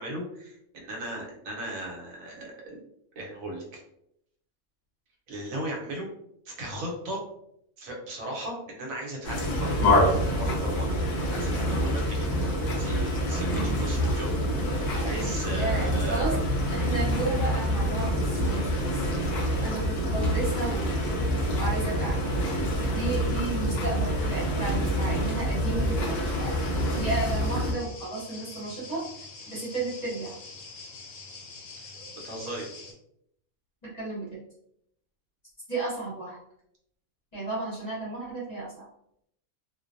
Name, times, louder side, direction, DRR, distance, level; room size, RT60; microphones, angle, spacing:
voice 1, 0.0-2.8 3.2-3.8 5.3-6.1 6.5-7.2 7.8-11.0 11.3-12.4 12.8-14.4 15.0-16.4 22.8-22.9 32.2-32.6, right 1 dB, 75° right, -1 dB, 1.1 m, -36 dB
sound 1, 9.2-27.7, equal, 50° left, 0.5 m, -26 dB
voice 2, 15.5-16.3 16.6-19.0 19.6-20.9 21.6-22.3 22.9-29.0 29.4-30.4 33.8-34.4 35.7-36.4 37.3-38.9, right 3 dB, 35° left, -8 dB, 0.9 m, -33 dB
sound 2, 25.4-32.9, left 3 dB, 85° left, 1.0 m, -45 dB
2.5 x 2.1 x 2.5 m, 0.74 s
omnidirectional pair, 1.5 m